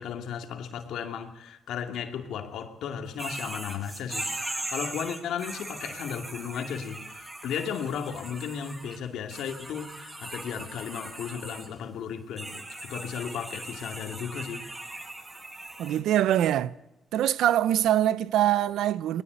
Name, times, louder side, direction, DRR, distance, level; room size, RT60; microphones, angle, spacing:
voice 1, 0.0-14.7, left 7 dB, 80° left, 2.4 m, -35 dB
sound 1, 3.2-9.0 9.3-11.7 12.4-16.0, right 2 dB, 20° right, 7.5 m, -39 dB
voice 2, 15.8-16.7 17.1-19.2, right 12 dB, 80° right, 0.7 m, -23 dB
21.0 x 18.5 x 8.2 m
cardioid pair, 90°, 0 cm